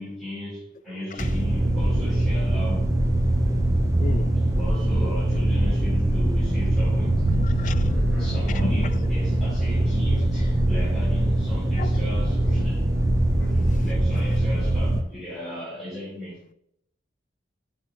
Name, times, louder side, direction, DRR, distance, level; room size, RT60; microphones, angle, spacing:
voice 1, 0.0-2.9 4.3-12.9 13.4-16.4, equal, ahead, 3.0 m, -37 dB
sound 1, 1.2-15.0, right 1 dB, 15° right, 0.7 m, -22 dB
voice 2, 4.0-4.6 5.0-5.1 7.4-8.9 11.8-12.0 13.5-13.9, left 4 dB, 40° left, 0.3 m, -35 dB
6.8 x 6.1 x 4.3 m
head